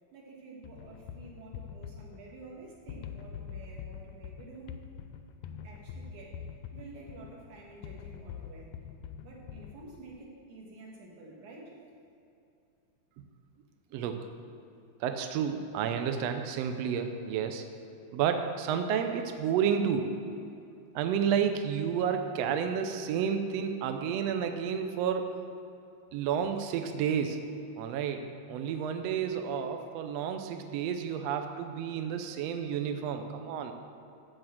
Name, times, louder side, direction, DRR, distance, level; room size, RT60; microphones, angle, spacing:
voice 1, 0.1-4.8 5.6-8.7 9.2-11.8, right 3 dB, 65° right, -2 dB, 3.2 m, -50 dB
sound 1, 0.6-10.2, left 7 dB, 80° left, 1.7 m, -45 dB
voice 2, 13.9-14.2 15.0-17.6 18.1-20.1 20.9-25.3 26.1-27.4 27.8-33.7, right 7 dB, 85° right, 6 dB, 1.4 m, -31 dB
14.0 x 4.9 x 7.6 m, 2.6 s
omnidirectional pair, 3.9 m